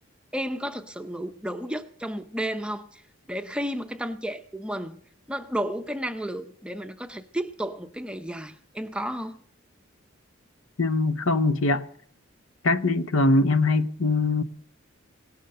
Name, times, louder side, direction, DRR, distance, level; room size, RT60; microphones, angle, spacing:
voice 1, 0.3-3.0 3.3-5.0 5.3-9.4, equal, 5° right, 0.6 m, -32 dB
voice 2, 10.8-11.9 12.6-14.4, left 2 dB, 70° left, 0.8 m, -22 dB
18.0 x 11.0 x 6.6 m
head